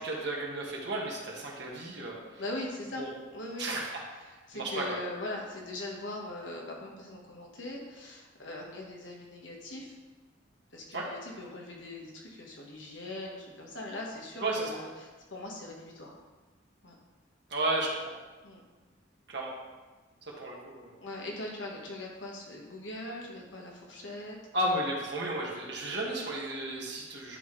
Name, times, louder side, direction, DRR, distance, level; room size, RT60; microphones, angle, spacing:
voice 1, 0.0-2.4 2.9-3.1 3.6-4.0 4.3-5.0 10.9-11.1 14.4-14.7 17.5-18.1 19.3-19.5 20.3-20.9 24.5-27.4, right 1 dB, 65° right, -2 dB, 1.6 m, -33 dB
voice 2, 2.4-3.7 4.5-10.0 10.7-16.2 16.8-16.9 18.4-18.6 21.0-24.4, left 1 dB, 80° left, -1 dB, 1.4 m, -41 dB
10.5 x 4.2 x 3.3 m, 1.3 s
head